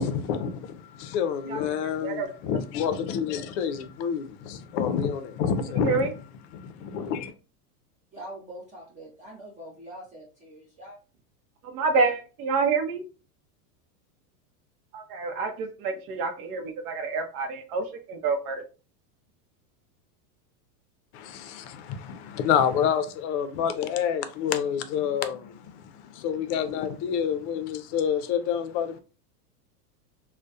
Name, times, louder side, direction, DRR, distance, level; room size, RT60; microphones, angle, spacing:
voice 1, 0.0-6.1 6.5-7.3 21.1-29.0, left 8 dB, 50° left, 0.5 m, -28 dB
voice 2, 1.5-2.3 5.8-6.1 11.6-13.0 14.9-18.6, right 4 dB, 70° right, 0.7 m, -28 dB
voice 3, 8.1-11.0, right 1 dB, 15° right, 0.5 m, -43 dB
2.2 x 2.1 x 2.6 m
supercardioid pair, 125°, 47 cm